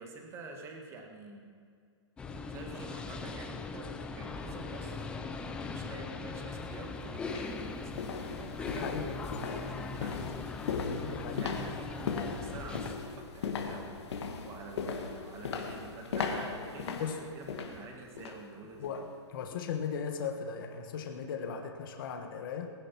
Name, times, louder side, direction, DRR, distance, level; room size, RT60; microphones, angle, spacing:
voice 1, 0.0-1.6 2.5-19.1, right 3 dB, 15° right, 2 dB, 1.6 m, -48 dB
sound 1, 2.2-12.9, left 4 dB, 5° left, 0.4 m, -40 dB
sound 2, 6.5-6.6 7.2-18.5 18.8-19.1 19.5-19.6, left 5 dB, 65° left, 1.9 m, -38 dB
voice 2, 8.7-9.2 11.0-11.5 17.0-17.2 18.8-22.7, left 6 dB, 45° left, 4 dB, 1.4 m, -37 dB
19.5 x 11.0 x 5.9 m, 2.3 s
hypercardioid pair, 165°, 15 cm